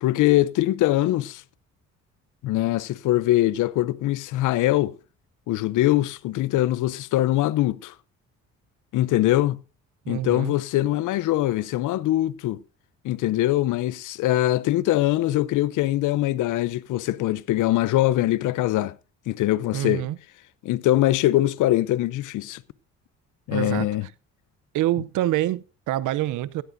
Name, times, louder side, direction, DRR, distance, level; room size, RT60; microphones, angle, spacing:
voice 1, 0.0-1.4 2.4-5.0 5.5-7.9 8.9-9.6 10.1-12.6 13.0-18.9 19.3-20.1 20.6-22.6 23.5-24.1, left 15 dB, 80° left, 0.6 m, -22 dB
voice 2, 10.1-10.5 19.7-20.2 23.5-23.9 24.7-26.6, right 14 dB, 85° right, 0.7 m, -26 dB
15.5 x 14.5 x 2.6 m
cardioid pair, 90°, 30 cm